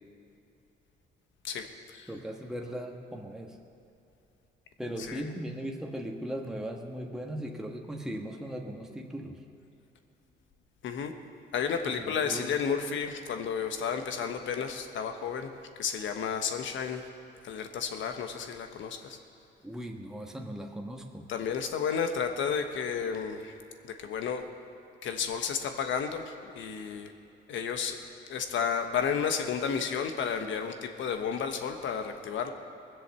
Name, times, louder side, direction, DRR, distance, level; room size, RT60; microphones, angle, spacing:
voice 1, 1.4-2.1 5.0-5.3 10.8-11.1 11.5-15.5 15.8-17.1 17.4-19.2 21.3-23.6 23.8-24.4 25.0-27.1 27.5-28.0 28.3-32.5, left 6 dB, 75° left, 6 dB, 1.3 m, -32 dB
voice 2, 2.1-3.6 4.8-9.4 11.9-12.5 19.6-21.3, right 1 dB, 5° right, 1 dB, 1.3 m, -38 dB
20.5 x 7.7 x 6.9 m, 2.7 s
cardioid pair, 90°, 20 cm